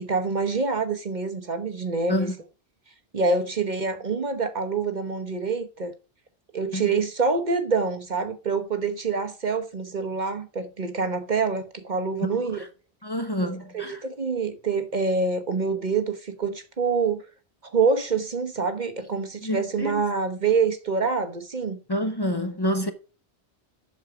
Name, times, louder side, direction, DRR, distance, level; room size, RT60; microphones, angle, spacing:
voice 1, 0.0-2.3 3.1-5.9 6.5-12.6 13.7-17.2 17.7-21.8, right 4 dB, 45° right, 1.1 m, -26 dB
voice 2, 12.3-12.7 13.0-14.0 19.4-20.0 21.9-22.9, equal, 25° left, 0.9 m, -28 dB
7.8 x 6.5 x 4.7 m
omnidirectional pair, 1.1 m